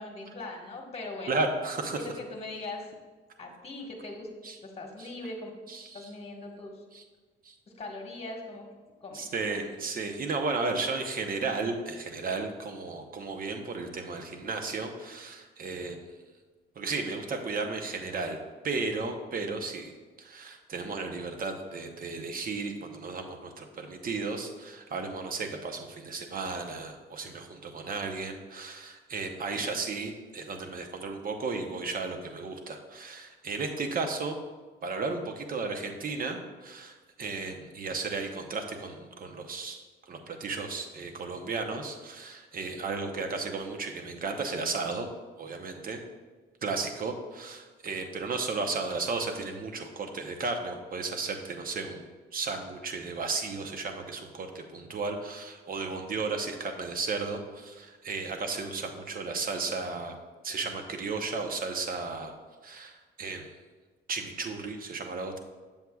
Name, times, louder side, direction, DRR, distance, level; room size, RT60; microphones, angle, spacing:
voice 1, 0.0-1.4 1.9-2.9 3.4-4.3 4.6-5.5 5.9-6.8 7.7-8.6 9.0-9.8, left 2 dB, 30° left, 1 dB, 1.4 m, -40 dB
voice 2, 1.3-2.0 4.4-4.6 5.0-5.1 5.7-6.1 6.9-7.0 7.4-7.5 9.1-16.0 16.8-18.4 18.6-19.9 20.2-34.4 34.8-45.1 45.4-46.0 46.6-60.2 60.4-62.3 62.6-63.5 64.1-65.4, right 3 dB, 45° right, 4 dB, 0.9 m, -34 dB
7.6 x 7.1 x 2.3 m, 1.3 s
cardioid pair, 90°, 20 cm